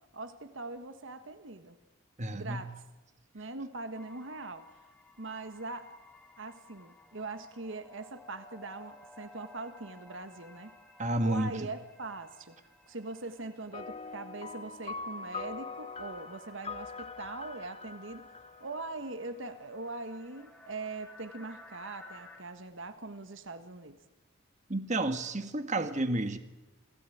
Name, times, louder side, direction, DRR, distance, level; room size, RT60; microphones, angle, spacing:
voice 1, 0.1-1.8 2.3-2.7 3.3-6.0 6.4-10.7 11.2-24.0, right 3 dB, 60° right, 10 dB, 1.5 m, -42 dB
voice 2, 2.2-2.6 11.0-11.7 24.7-26.4, right 1 dB, 35° right, 9 dB, 1.8 m, -31 dB
sound 1, 3.9-22.4, left 2 dB, 5° left, 4.0 m, -57 dB
sound 2, 13.7-19.5, left 4 dB, 30° left, 1.1 m, -43 dB
29.0 x 18.0 x 9.3 m, 1.1 s
head